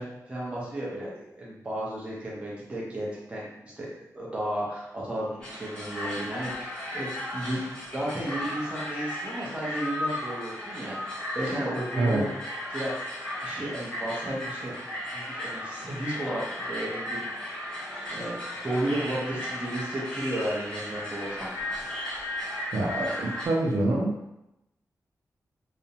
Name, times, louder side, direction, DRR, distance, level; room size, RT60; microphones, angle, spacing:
voice 1, 0.0-12.3 12.7-12.9 13.4-14.7 15.1-17.2 18.1-21.5, right 1 dB, 15° right, -6 dB, 0.6 m, -33 dB
sound 1, 5.4-23.5, left 1 dB, 15° left, 0.7 m, -35 dB
voice 2, 22.7-24.1, right 2 dB, 75° right, -3 dB, 0.5 m, -26 dB
2.4 x 2.1 x 2.8 m, 0.89 s
wide cardioid pair, 170°, 6 cm